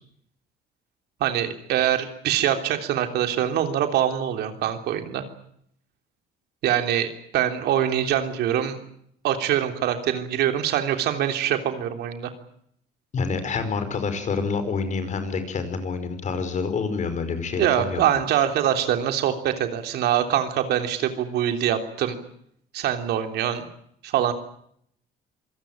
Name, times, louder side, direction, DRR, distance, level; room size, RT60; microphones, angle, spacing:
voice 1, 1.2-5.2 6.6-8.8 9.2-12.3 17.6-22.2 22.7-23.7 24.0-24.3, right 10 dB, 75° right, 6 dB, 3.4 m, -24 dB
voice 2, 13.1-18.2, left 5 dB, 45° left, 10 dB, 5.2 m, -27 dB
26.5 x 18.0 x 9.1 m, 0.69 s
cardioid pair, 110°, 17 cm